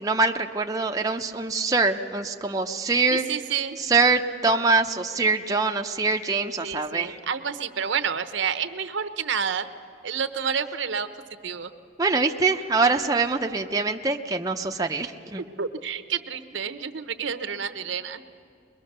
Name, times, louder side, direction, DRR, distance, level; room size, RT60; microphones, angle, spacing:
voice 1, 0.0-3.3 3.8-7.2 12.0-15.4, right 3 dB, 20° right, 3 dB, 0.6 m, -24 dB
voice 2, 3.1-3.8 6.6-9.7 10.0-11.1 11.4-11.7 15.6-18.2, right 7 dB, 70° right, 9 dB, 0.8 m, -29 dB
22.5 x 22.0 x 6.6 m, 2.5 s
head